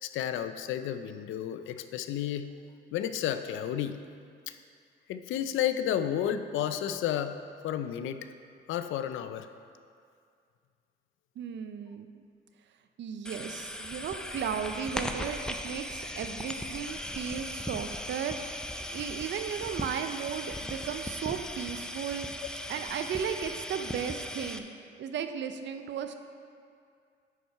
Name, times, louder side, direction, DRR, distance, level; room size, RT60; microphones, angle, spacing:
voice 1, 0.0-2.5 2.9-4.0 4.5-4.6 5.1-7.4 7.6-8.2 8.7-9.5, left 10 dB, 85° left, 10 dB, 0.5 m, -31 dB
voice 2, 11.4-12.2 13.0-22.3 22.7-26.1, right 7 dB, 65° right, 8 dB, 0.6 m, -35 dB
sound 1, 13.2-24.6, left 1 dB, 5° left, 0.4 m, -38 dB
9.8 x 4.5 x 4.5 m, 2.3 s
cardioid pair, 90°, 20 cm